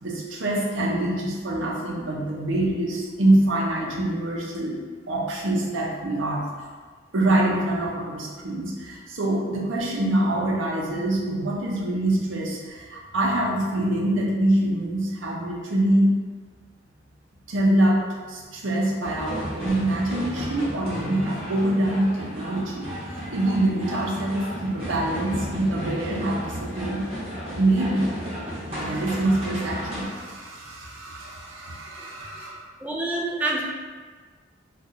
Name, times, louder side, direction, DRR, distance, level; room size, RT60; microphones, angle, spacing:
voice 1, 0.0-4.8 5.1-6.7 7.1-16.1 17.5-27.0 27.5-28.1 28.7-32.7, right 1 dB, 75° right, -2 dB, 0.6 m, -25 dB
sound 1, 19.0-30.0, equal, 30° right, 1.1 m, -34 dB
voice 2, 32.8-33.6, right 2 dB, 10° right, -2 dB, 0.3 m, -26 dB
3.8 x 2.3 x 2.6 m, 1.5 s
head